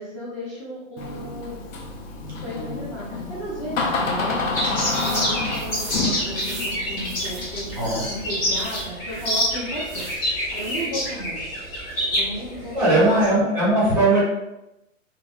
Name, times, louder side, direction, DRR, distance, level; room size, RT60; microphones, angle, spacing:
voice 1, 0.0-1.6 2.4-4.5 4.9-11.4 12.1-13.2, equal, 25° left, -10 dB, 0.6 m, -34 dB
Door, 1.0-8.6, left 3 dB, 70° left, 0.6 m, -29 dB
sound 1, 4.5-13.3, equal, 45° left, 1.3 m, -27 dB
sound 2, 4.8-5.3 5.5-8.1 8.5-10.2 10.5-11.0, right 3 dB, 25° right, 0.5 m, -41 dB
voice 2, 12.7-14.2, right 2 dB, 5° right, -9 dB, 1.4 m, -19 dB
2.9 x 2.5 x 2.4 m, 0.91 s
hypercardioid pair, 155°, 40 cm